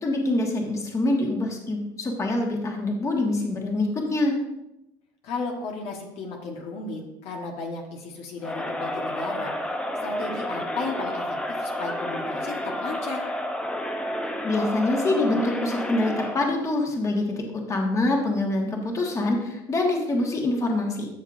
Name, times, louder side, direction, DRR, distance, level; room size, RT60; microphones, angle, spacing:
voice 1, 0.0-4.3 14.4-17.2 17.7-21.1, left 2 dB, 30° left, 1 dB, 1.7 m, -25 dB
voice 2, 5.2-13.2, left 3 dB, 65° left, 1 dB, 1.4 m, -34 dB
Crowd, 8.4-16.5, equal, 10° left, 0.8 m, -30 dB
13.0 x 6.5 x 2.6 m, 0.88 s
supercardioid pair, 110°, 11 cm